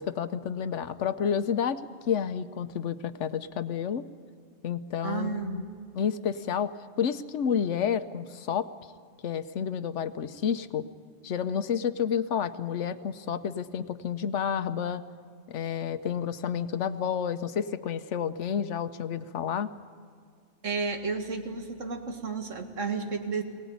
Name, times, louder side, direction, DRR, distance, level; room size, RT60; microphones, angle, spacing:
voice 1, 0.0-4.1 4.6-5.6 5.9-8.7 9.2-10.9 11.2-15.0 15.5-19.7, left 8 dB, 70° left, 12 dB, 1.1 m, -30 dB
voice 2, 5.0-5.8 20.6-23.4, right 4 dB, 80° right, 5 dB, 2.1 m, -32 dB
22.5 x 17.5 x 9.4 m, 2.1 s
omnidirectional pair, 1.3 m